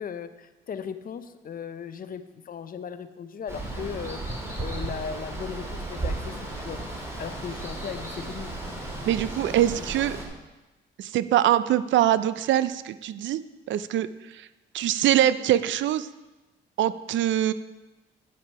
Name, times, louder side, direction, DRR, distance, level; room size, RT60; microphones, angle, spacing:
voice 1, 0.0-6.8 7.2-8.5, left 7 dB, 45° left, 11 dB, 0.7 m, -37 dB
Water, 3.5-10.2, right 2 dB, 15° right, 2.8 m, -34 dB
voice 2, 9.1-10.2 11.0-13.4 13.7-14.1 14.3-14.5 14.7-16.1 16.8-17.5, right 12 dB, 70° right, 15 dB, 0.5 m, -23 dB
8.8 x 7.5 x 5.5 m, 1.1 s
cardioid pair, 90°, 20 cm